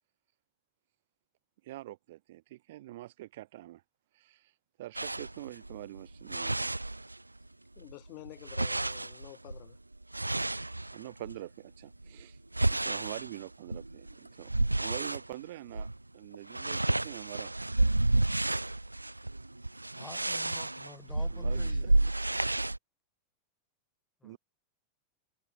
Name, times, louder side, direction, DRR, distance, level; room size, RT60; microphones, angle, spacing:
voice 1, 1.6-3.8 4.1-4.5 4.8-6.8 10.6-12.4 12.6-14.5 14.8-17.5 21.3-22.1 24.2-24.4, right 16 dB, 55° right, 1.0 m, -45 dB
sound 1, 5.0-7.5 7.8-11.4 11.9-15.3 15.7-16.0 16.2-22.8, right 2 dB, 85° right, 0.3 m, -31 dB
voice 2, 7.8-9.8, left 28 dB, 45° left, 5.3 m, -49 dB
voice 3, 19.9-21.9 24.2-24.4, left 4 dB, 10° left, 3.2 m, -50 dB
figure-of-eight pair, 90°, 0 cm